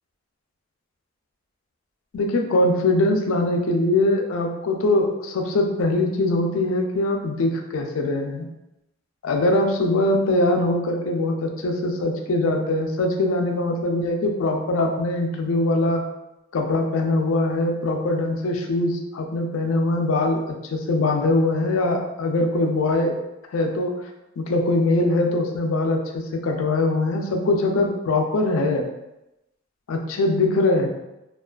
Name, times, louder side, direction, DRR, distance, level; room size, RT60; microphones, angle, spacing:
voice 1, 2.1-8.5 9.2-16.0 16.5-23.1 23.5-23.9 24.4-28.9 29.9-30.9, left 2 dB, 85° left, 3 dB, 0.4 m, -22 dB
2.3 x 2.3 x 2.3 m, 0.94 s
head